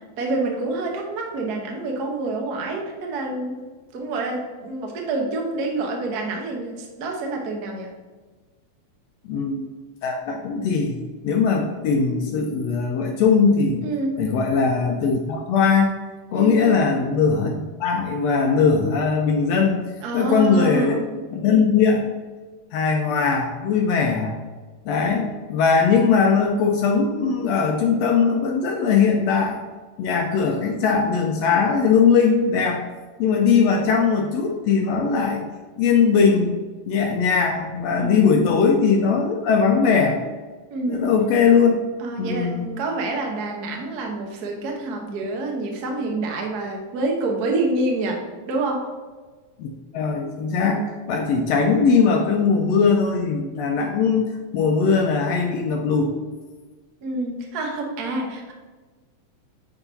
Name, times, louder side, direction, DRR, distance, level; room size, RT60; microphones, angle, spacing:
voice 1, 0.2-3.6 3.9-7.9 13.8-14.1 16.3-16.8 20.0-21.1 38.0-38.5 40.7-41.1 42.0-48.2 48.5-48.8 57.0-58.5, right 2 dB, 70° right, 1 dB, 0.9 m, -27 dB
voice 2, 9.2-9.6 10.0-11.0 11.2-13.8 14.2-15.9 16.3-19.8 20.1-21.0 21.3-22.1 22.7-24.3 24.8-29.6 30.0-32.8 33.2-35.5 35.8-36.6 36.9-40.2 40.9-41.8 42.2-42.7 49.6-56.1, left 5 dB, 75° left, 2 dB, 1.6 m, -20 dB
9.7 x 3.9 x 4.0 m, 1.4 s
omnidirectional pair, 3.6 m